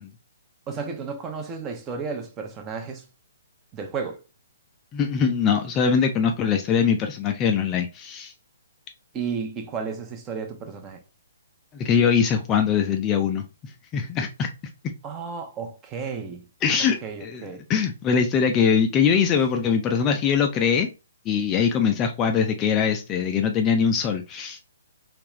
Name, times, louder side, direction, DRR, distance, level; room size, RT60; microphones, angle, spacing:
voice 1, 0.7-3.0 3.7-4.2 9.1-11.0 15.0-16.5 17.0-17.6, right 5 dB, 20° right, 0.8 m, -33 dB
voice 2, 4.9-8.3 11.7-14.5 16.6-20.9 21.3-24.6, left 6 dB, 20° left, 0.4 m, -22 dB
3.4 x 3.2 x 3.0 m
figure-of-eight pair, 125°, 0 cm